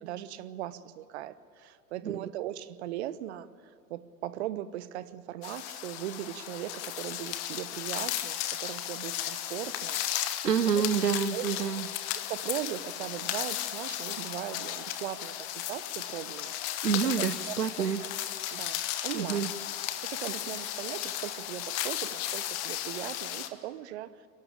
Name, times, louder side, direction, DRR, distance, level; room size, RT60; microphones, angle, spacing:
voice 1, 0.0-3.5 3.9-10.0 10.7-10.9 11.3-11.4 12.3-16.5 17.0-18.1 18.5-19.5 20.0-24.3, right 13 dB, 45° right, 15 dB, 1.0 m, -39 dB
sound 1, 5.4-23.5, left 12 dB, 30° left, 1.3 m, -35 dB
voice 2, 10.4-11.9 16.8-18.0 19.1-19.5, right 7 dB, 80° right, 16 dB, 1.0 m, -28 dB
27.5 x 12.0 x 8.7 m, 2.6 s
figure-of-eight pair, 100°, 47 cm